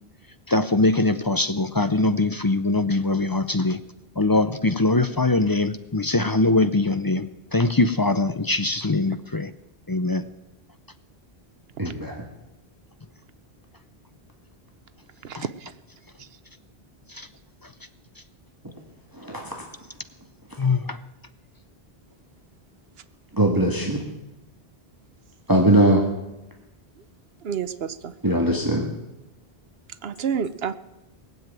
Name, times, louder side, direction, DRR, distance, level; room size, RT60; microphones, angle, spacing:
voice 1, 0.5-3.8 4.2-9.5 9.9-10.2 15.3-15.5 17.1-17.3 20.6-21.0, left 2 dB, 30° left, 11 dB, 0.5 m, -22 dB
voice 2, 11.8-12.3 19.2-19.6 23.3-24.0 25.5-26.0 28.2-28.9, right 1 dB, 20° right, 1 dB, 1.7 m, -20 dB
voice 3, 27.4-28.1 30.0-30.7, right 7 dB, 75° right, 14 dB, 1.0 m, -28 dB
19.0 x 7.9 x 9.0 m, 0.97 s
omnidirectional pair, 1.0 m